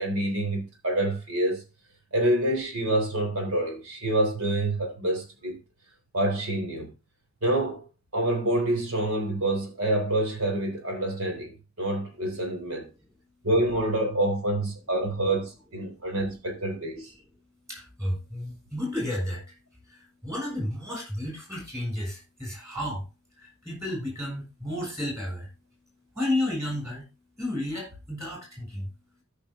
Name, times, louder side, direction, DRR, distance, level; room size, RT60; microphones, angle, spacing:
voice 1, 0.0-1.6 2.1-5.6 6.1-6.9 7.4-7.9 8.1-12.9 13.4-17.1, right 1 dB, 70° right, 3.5 m, -27 dB
voice 2, 17.7-23.0 23.3-25.5 26.1-27.1 27.4-28.9, left 1 dB, 15° right, 6.7 m, -32 dB
14.0 x 5.8 x 3.7 m
head